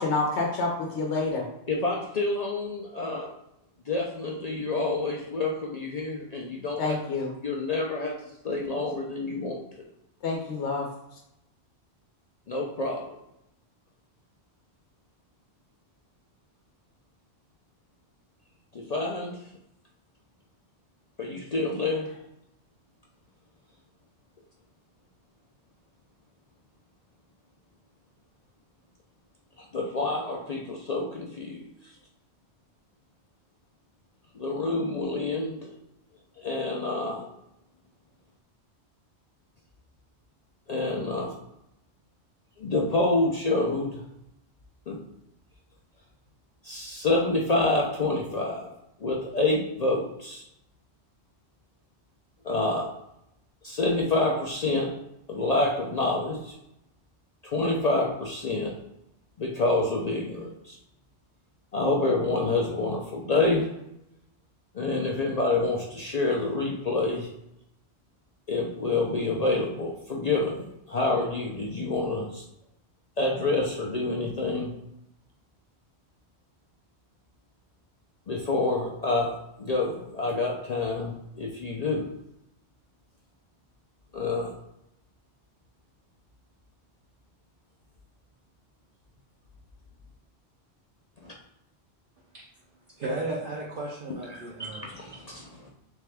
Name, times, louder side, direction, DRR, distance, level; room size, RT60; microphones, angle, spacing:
voice 1, 0.0-1.5 6.8-7.3 10.2-10.9, left 3 dB, 90° left, 0 dB, 1.0 m, -28 dB
voice 2, 1.7-3.3 3.9-7.0 7.4-9.9 12.5-13.2 18.7-19.5 21.2-22.2 29.6-32.0 34.3-35.7 36.4-37.3 40.7-41.3 42.6-44.0 44.9-45.0 46.6-48.7 49.0-50.4 52.4-52.9 53.6-54.9 55.3-56.5 57.4-58.7 59.4-60.8 61.7-63.7 64.7-67.3 68.5-72.4 73.2-74.7 78.3-82.1 84.1-84.5 91.2-91.3 94.3-95.7, left 2 dB, 50° left, -1 dB, 0.5 m, -28 dB
voice 3, 93.0-94.9, right 2 dB, 55° right, -3 dB, 0.8 m, -34 dB
3.6 x 3.3 x 3.3 m, 0.83 s
omnidirectional pair, 1.1 m